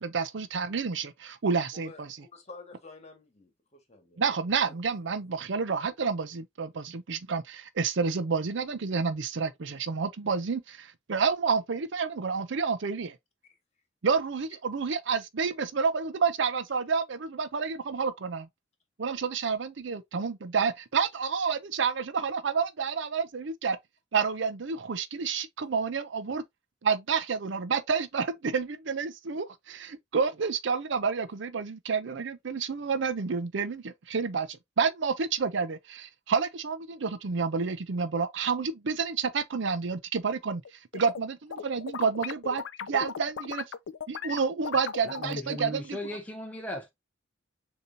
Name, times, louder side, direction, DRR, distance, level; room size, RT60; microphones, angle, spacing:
voice 1, 0.0-2.1 4.2-13.2 14.0-18.5 19.0-23.8 24.1-26.4 26.8-43.6 44.1-46.0, right 5 dB, 70° right, 0.6 m, -29 dB
voice 2, 1.7-4.2 41.0-41.1, left 3 dB, 35° left, 1.6 m, -50 dB
sound 1, 40.6-41.2 41.5-45.7, left 7 dB, 70° left, 0.4 m, -37 dB
voice 3, 45.1-46.9, equal, 10° left, 0.7 m, -37 dB
6.7 x 2.9 x 2.7 m
head